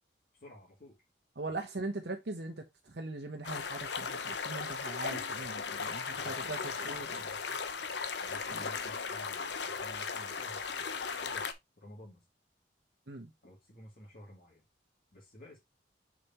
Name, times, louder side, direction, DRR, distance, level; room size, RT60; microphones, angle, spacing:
voice 1, 0.3-1.0 5.1-5.5 6.1-7.6 8.2-10.9 11.2-12.2 13.4-14.6 15.1-15.6, left 1 dB, 50° left, 2.6 m, -53 dB
voice 2, 1.4-6.6 6.8-7.1 8.5-8.6 13.1-13.3, right 2 dB, 60° right, 1.0 m, -40 dB
sound 1, 3.4-11.5, left 5 dB, 70° left, 0.9 m, -37 dB
6.6 x 5.1 x 2.9 m
head